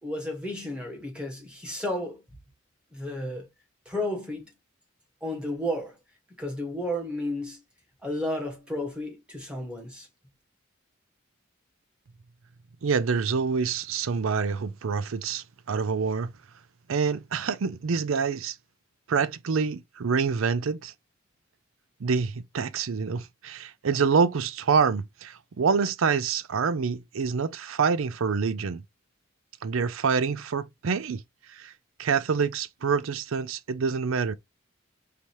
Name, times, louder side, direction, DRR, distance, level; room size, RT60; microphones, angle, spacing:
voice 1, 0.0-2.2 2.9-3.5 3.8-4.4 5.2-5.9 6.4-7.6 8.0-10.1, left 1 dB, 5° right, 1.6 m, -32 dB
voice 2, 12.8-16.3 16.9-18.6 19.1-20.9 22.0-28.8 29.6-31.2 31.5-31.7 32.0-34.3, right 5 dB, 75° right, 0.5 m, -26 dB
5.0 x 2.8 x 3.0 m
head